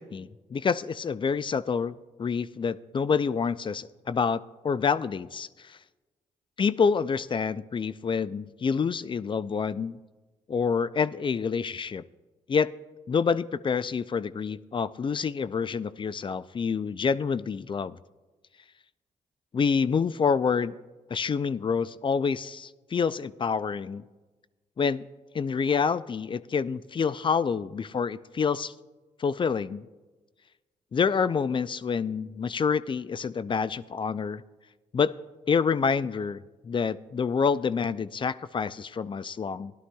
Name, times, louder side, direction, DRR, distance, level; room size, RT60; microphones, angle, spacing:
voice 1, 0.0-5.8 6.6-10.0 10.5-12.0 12.5-12.7 13.1-18.0 19.5-20.8 21.1-24.0 24.8-25.0 25.3-28.7 29.2-29.9 30.9-34.4 34.9-35.1 35.5-39.7, left 6 dB, 35° left, 16 dB, 0.4 m, -27 dB
17.5 x 11.5 x 2.3 m, 1.2 s
supercardioid pair, 60°, 14 cm